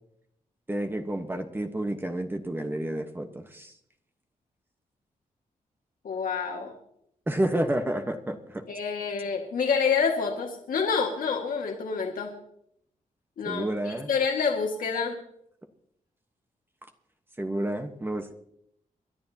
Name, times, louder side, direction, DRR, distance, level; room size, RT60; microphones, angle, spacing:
voice 1, 0.7-3.7 7.3-8.6 13.5-14.1 17.4-18.3, right 1 dB, 15° right, 5 dB, 1.2 m, -30 dB
voice 2, 6.0-6.7 8.7-12.3 13.4-15.2, left 5 dB, 85° left, 1 dB, 1.9 m, -28 dB
27.0 x 11.5 x 2.9 m, 0.74 s
wide cardioid pair, 115°, 14 cm